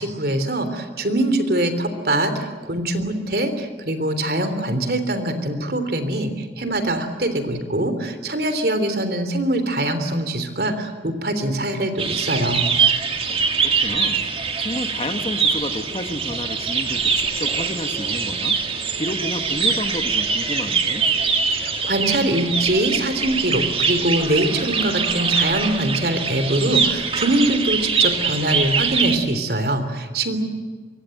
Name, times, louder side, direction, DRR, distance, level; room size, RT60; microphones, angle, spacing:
voice 1, 0.0-12.6 21.5-30.4, right 1 dB, 55° right, 9 dB, 3.3 m, -23 dB
sound 1, 12.0-29.2, right 5 dB, 35° right, 2.4 m, -23 dB
voice 2, 13.3-14.3 14.6-18.6 19.0-21.1, left 1 dB, 30° left, 7 dB, 1.6 m, -30 dB
25.5 x 23.5 x 7.9 m, 1.5 s
head